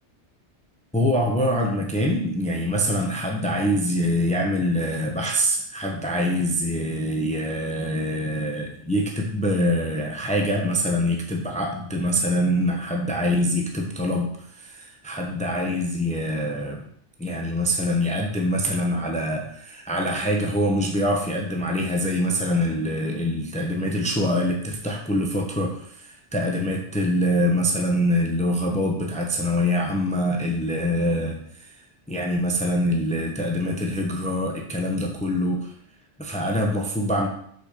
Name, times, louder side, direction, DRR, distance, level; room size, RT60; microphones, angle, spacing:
voice 1, 0.9-16.9 17.2-31.7 32.1-35.7 36.2-37.3, equal, 5° left, 1 dB, 1.0 m, -24 dB
6.2 x 5.8 x 6.8 m, 0.66 s
omnidirectional pair, 1.2 m